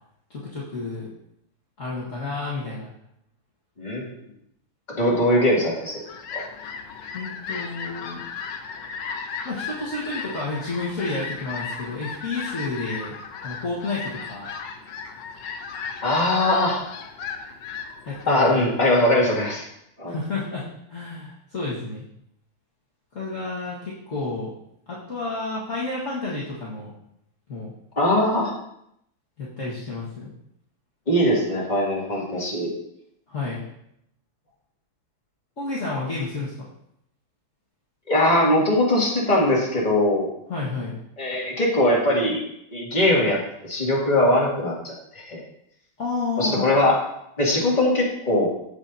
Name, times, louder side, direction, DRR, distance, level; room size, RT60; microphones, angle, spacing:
voice 1, 0.3-1.1 1.8-2.9 7.1-8.2 9.4-13.1 13.4-14.5 18.0-18.6 20.1-22.0 23.1-24.5 24.9-26.9 27.5-27.7 29.4-30.3 33.3-33.6 35.6-36.5 40.5-41.0 46.0-46.7, left 3 dB, 40° left, -7 dB, 1.8 m, -30 dB
voice 2, 3.8-4.1 4.9-6.0 6.3-6.4 16.0-16.8 18.3-19.7 20.0-20.1 28.0-28.5 31.1-32.7 38.1-40.3 41.2-42.4 42.7-45.4 46.4-47.0 47.4-48.5, left 1 dB, 20° left, -4 dB, 2.3 m, -21 dB
Fowl, 5.7-19.6, left 5 dB, 70° left, 1.4 m, -36 dB
15.0 x 5.8 x 2.7 m, 0.76 s
omnidirectional pair, 2.2 m